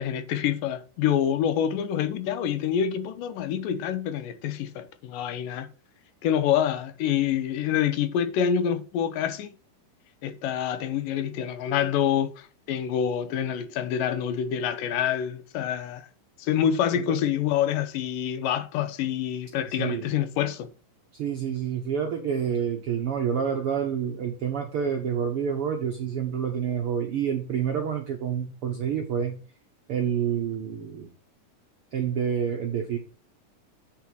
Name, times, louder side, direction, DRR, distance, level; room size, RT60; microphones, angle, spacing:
voice 1, 0.0-5.7 6.2-9.5 10.2-16.1 16.4-20.7, left 9 dB, 80° left, 2.4 m, -27 dB
voice 2, 19.8-20.1 21.1-29.4 29.9-31.1 31.9-33.0, right 8 dB, 65° right, 1.3 m, -28 dB
8.4 x 5.5 x 4.5 m
omnidirectional pair, 4.0 m